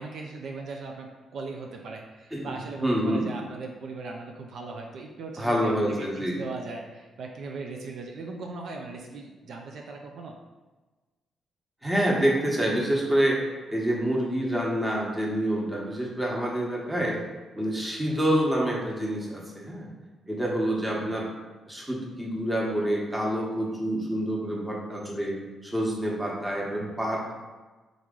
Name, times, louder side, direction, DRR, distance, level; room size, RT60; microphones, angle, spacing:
voice 1, 0.0-10.4 17.0-17.1 21.0-21.2 26.8-26.9, right 3 dB, 70° right, 1 dB, 0.4 m, -39 dB
voice 2, 2.8-3.3 5.4-6.4 11.8-13.4 13.7-17.2 17.6-19.9 20.3-21.3 21.7-27.4, right 1 dB, 10° right, -3 dB, 1.0 m, -27 dB
3.8 x 3.0 x 3.7 m, 1.2 s
cardioid pair, 90°, 0 cm